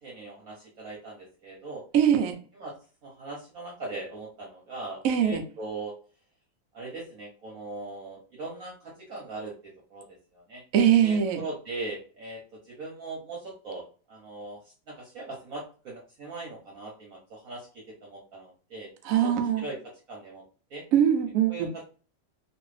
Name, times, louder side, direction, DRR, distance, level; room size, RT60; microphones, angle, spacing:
voice 1, 0.0-1.8 2.5-2.8 3.0-6.0 6.7-10.6 11.0-18.9 19.4-19.8 20.1-20.4 20.7-20.8 21.5-21.8, right 2 dB, 55° right, -2 dB, 1.0 m, -40 dB
voice 2, 1.9-2.3 5.0-5.4 10.7-11.4 19.0-19.6 20.9-21.7, right 9 dB, 85° right, 5 dB, 0.7 m, -22 dB
3.0 x 2.6 x 3.1 m, 0.37 s
omnidirectional pair, 2.2 m